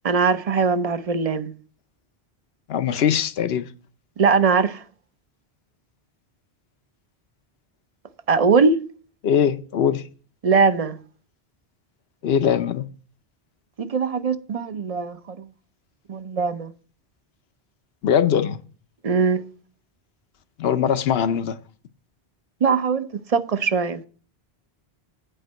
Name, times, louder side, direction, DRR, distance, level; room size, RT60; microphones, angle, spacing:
voice 1, 0.0-1.5 4.2-4.8 8.3-8.8 10.4-11.0 13.8-15.5 16.1-16.7 19.0-19.4 22.6-24.0, right 5 dB, 40° right, 0.7 m, -21 dB
voice 2, 2.7-3.6 9.2-10.0 12.2-12.9 18.0-18.6 20.6-21.6, left 8 dB, 75° left, 0.9 m, -21 dB
8.9 x 5.3 x 7.7 m
omnidirectional pair, 1.1 m